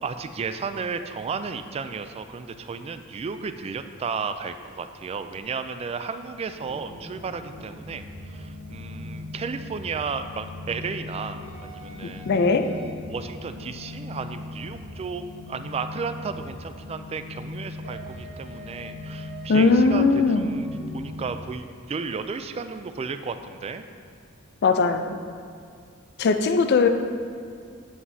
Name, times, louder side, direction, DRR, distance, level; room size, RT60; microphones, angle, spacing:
voice 1, 0.0-12.3 13.1-20.1 20.3-23.9, right 5 dB, 30° right, 10 dB, 0.3 m, -33 dB
sound 1, 6.6-21.3, left 2 dB, 90° right, 1.2 m, -39 dB
voice 2, 12.0-12.7 19.5-20.5 24.6-25.2 26.2-26.9, left 4 dB, 55° left, 8 dB, 0.4 m, -20 dB
8.4 x 7.3 x 2.7 m, 2.2 s
head